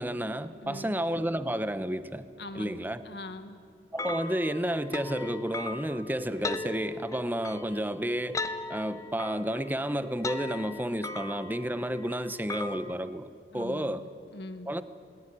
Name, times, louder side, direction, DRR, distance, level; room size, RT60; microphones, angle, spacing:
voice 1, 0.0-2.2 2.5-3.0 3.9-8.4 8.7-13.3 13.5-14.0 14.7-14.8, equal, 10° right, 12 dB, 0.9 m, -31 dB
voice 2, 0.6-1.0 2.4-3.6 13.5-14.7, left 1 dB, 70° left, 9 dB, 1.6 m, -42 dB
sound 1, 4.0-12.9, left 3 dB, 20° left, 0.8 m, -39 dB
28.0 x 19.5 x 10.0 m, 2.3 s
head